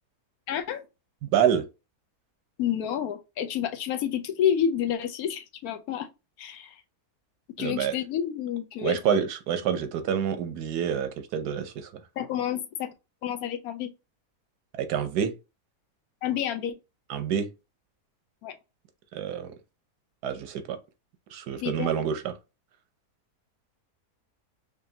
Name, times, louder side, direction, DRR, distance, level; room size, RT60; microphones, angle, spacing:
voice 1, 0.5-0.8 2.6-6.1 6.4-6.8 7.6-9.2 12.2-12.9 13.2-13.9 16.2-16.8 18.4-18.5 21.6-22.1, left 9 dB, 75° left, 1.1 m, -29 dB
voice 2, 1.2-1.7 7.6-8.0 8.8-11.9 14.7-15.3 17.1-17.5 19.1-19.5 20.2-20.8 21.3-22.3, right 8 dB, 90° right, 1.3 m, -27 dB
5.0 x 2.6 x 2.7 m
omnidirectional pair, 1.6 m